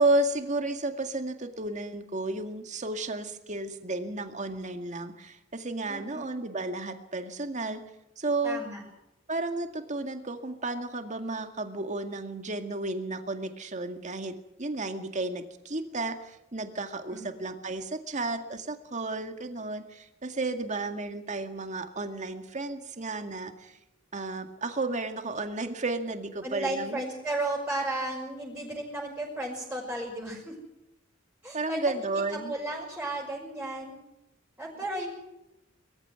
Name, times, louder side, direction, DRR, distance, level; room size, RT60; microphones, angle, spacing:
voice 1, 0.0-7.8 8.2-8.6 9.3-23.8 24.1-27.0 31.5-32.5, right 2 dB, 40° right, 7 dB, 2.0 m, -32 dB
voice 2, 5.9-6.3 8.4-8.8 17.1-17.3 26.4-30.5 31.4-31.9 32.3-34.0 34.6-35.1, right 2 dB, 5° right, -6 dB, 5.8 m, -34 dB
22.0 x 15.0 x 9.5 m, 0.90 s
head